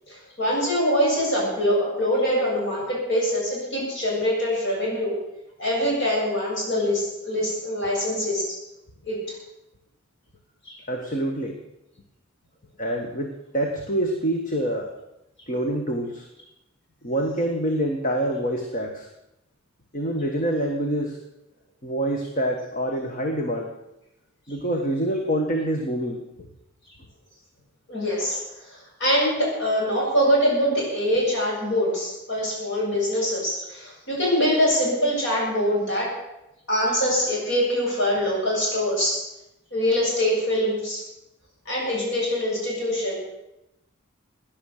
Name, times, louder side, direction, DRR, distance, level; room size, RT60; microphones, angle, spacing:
voice 1, 0.1-5.1 5.6-8.5 9.0-9.3 10.6-10.7 27.9-36.1 36.7-39.2 39.7-41.0 41.7-43.2, equal, 55° left, -3 dB, 7.4 m, -24 dB
voice 2, 10.9-11.6 12.8-14.9 15.5-16.3 17.0-19.1 19.9-21.2 21.8-23.7 24.5-26.3, right 1 dB, 35° left, 3 dB, 1.4 m, -26 dB
16.5 x 10.5 x 6.6 m, 0.90 s
head